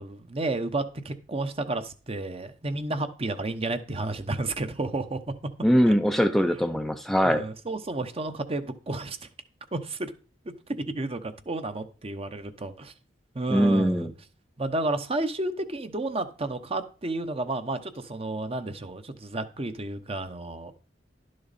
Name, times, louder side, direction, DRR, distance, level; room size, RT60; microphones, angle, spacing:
voice 1, 0.0-5.3 5.9-6.0 7.2-9.2 9.7-10.1 10.4-10.5 10.9-12.9 13.3-14.1 14.6-20.7, right 2 dB, 35° right, 0.9 m, -31 dB
voice 2, 5.6-7.4 13.5-14.1, equal, ahead, 0.5 m, -22 dB
11.5 x 6.4 x 4.2 m
head